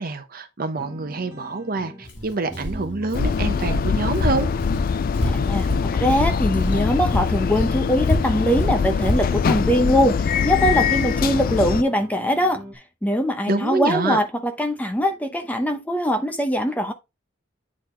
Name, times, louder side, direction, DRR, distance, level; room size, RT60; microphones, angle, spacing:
voice 1, 0.0-4.5 13.5-14.2, right 3 dB, 50° right, 0.9 m, -26 dB
sound 1, 0.8-12.8, right 1 dB, 15° right, 1.3 m, -39 dB
Walk footsteps, 2.0-6.8 7.1-9.7, left 1 dB, 70° left, 2.4 m, -27 dB
sound 2, 3.1-11.8, left 6 dB, 50° left, 0.3 m, -23 dB
voice 2, 6.0-12.6 13.0-16.9, equal, 10° left, 0.8 m, -22 dB
8.7 x 4.1 x 3.2 m
head